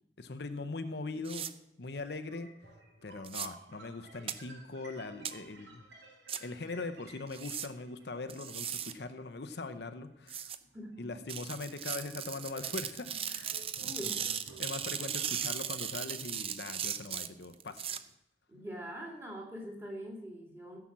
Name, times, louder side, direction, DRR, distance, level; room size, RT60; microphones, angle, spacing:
voice 1, 0.2-1.5 1.8-2.5 3.0-5.8 6.4-10.5 11.0-13.9 14.6-17.8, left 3 dB, 65° left, 9 dB, 0.7 m, -41 dB
sound 1, 1.2-1.5 3.2-3.5 4.3-4.4 5.2-5.3 6.3-6.4 7.3-7.7 8.3-8.9 10.3-10.6 11.3-18.0, right 9 dB, 30° right, 0.5 m, -37 dB
sound 2, 1.9-10.3 10.8-14.9, right 2 dB, 80° right, 3.9 m, -56 dB
voice 2, 10.7-11.1 13.8-14.3 18.5-20.8, equal, 15° right, 0 dB, 2.6 m, -43 dB
15.0 x 6.0 x 7.3 m, 0.88 s
head